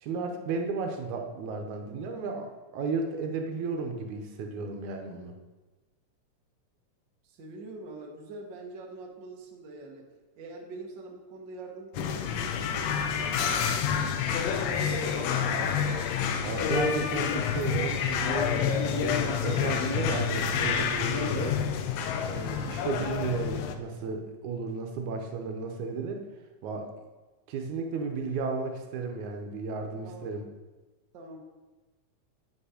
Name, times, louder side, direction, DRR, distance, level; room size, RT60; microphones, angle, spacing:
voice 1, 0.0-2.5 2.7-5.3 16.4-18.5 18.9-21.7 22.2-26.2 26.6-26.9 27.5-30.4, right 4 dB, 75° right, 3 dB, 2.2 m, -33 dB
voice 2, 7.2-10.1 10.4-13.4 13.9-16.0 30.0-30.5 31.1-31.4, right 2 dB, 55° right, 0 dB, 1.3 m, -44 dB
sound 1, 11.9-23.8, left 7 dB, 80° left, 1.5 m, -28 dB
8.8 x 5.2 x 4.9 m, 1.2 s
omnidirectional pair, 3.5 m